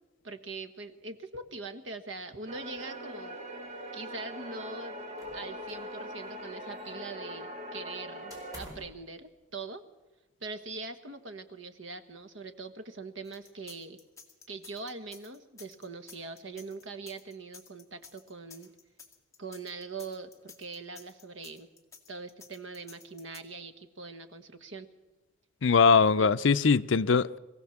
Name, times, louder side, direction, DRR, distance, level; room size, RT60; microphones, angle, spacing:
voice 1, 0.2-3.4 3.9-5.0 5.3-9.8 10.4-14.0 14.5-18.7 19.4-21.7 22.1-24.9 26.2-26.3, right 3 dB, 75° right, 1.5 m, -42 dB
Glorious Intro, 2.5-8.6, equal, 35° right, 2.0 m, -41 dB
sound 1, 5.2-6.0 6.2-7.2 8.3-9.0, equal, 20° right, 4.6 m, -49 dB
sound 2, 13.2-23.4, left 6 dB, 15° left, 2.0 m, -52 dB
voice 2, 25.6-27.4, left 5 dB, 70° left, 0.5 m, -22 dB
22.5 x 15.5 x 7.3 m
head